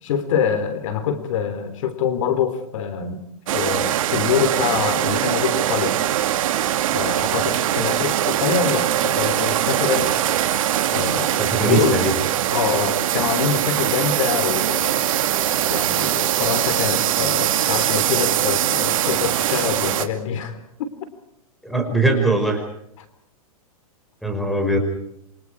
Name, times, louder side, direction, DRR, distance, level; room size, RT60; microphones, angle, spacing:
voice 1, 0.0-3.2 3.5-6.0 6.9-10.2 10.9-11.3 11.6-12.0 12.5-15.1 15.7-20.6, left 7 dB, 60° left, 12 dB, 3.7 m, -25 dB
sound 1, 3.5-20.1, right 12 dB, 65° right, 2.4 m, -22 dB
voice 2, 11.4-12.1 21.6-22.6 24.2-24.8, right 2 dB, ahead, 3 dB, 5.3 m, -20 dB
28.5 x 25.5 x 4.8 m, 0.74 s
hypercardioid pair, 145°, 19 cm